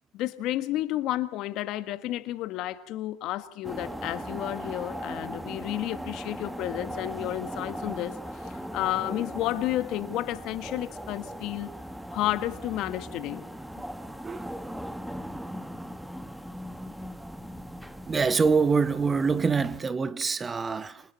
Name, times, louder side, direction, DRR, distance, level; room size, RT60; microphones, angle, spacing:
voice 1, 0.1-11.7 12.1-13.5, left 14 dB, 50° left, 1.6 m, -31 dB
sound 1, 3.6-19.8, equal, 5° right, 1.3 m, -39 dB
voice 2, 14.2-14.6 18.1-21.0, right 5 dB, 20° right, 0.9 m, -25 dB
27.5 x 27.0 x 4.3 m
hypercardioid pair, 95°, 0 cm